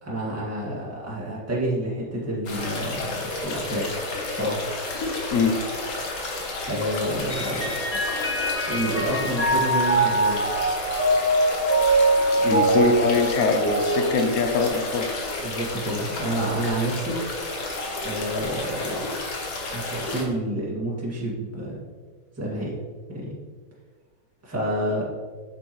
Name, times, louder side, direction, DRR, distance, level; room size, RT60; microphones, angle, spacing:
voice 1, 0.0-3.1 3.4-3.9 4.3-4.7 5.4-5.5 6.7-8.0 8.7-10.4 12.4-12.6 15.4-17.2 18.0-19.1 19.7-21.8 22.4-22.8 23.1-23.3 24.4-25.0, right 1 dB, 5° right, -7 dB, 1.8 m, -29 dB
sound 1, 2.5-20.2, left 2 dB, 50° left, 1.4 m, -31 dB
Mallet percussion, 7.3-15.0, right 1 dB, 15° left, 0.5 m, -23 dB
voice 2, 12.4-15.1, left 4 dB, 80° left, 6 dB, 0.7 m, -22 dB
7.9 x 6.8 x 3.1 m, 1.5 s
omnidirectional pair, 2.3 m